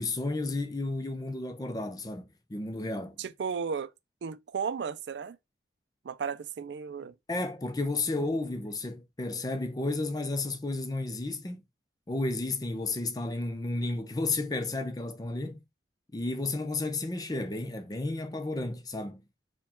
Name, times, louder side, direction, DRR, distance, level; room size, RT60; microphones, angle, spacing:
voice 1, 0.0-3.2 7.3-11.6 12.1-15.6 16.1-19.2, left 2 dB, 20° left, 0.5 m, -32 dB
voice 2, 3.2-3.9 4.2-5.4 6.0-7.1, right 6 dB, 80° right, 0.4 m, -34 dB
4.6 x 2.3 x 3.6 m
head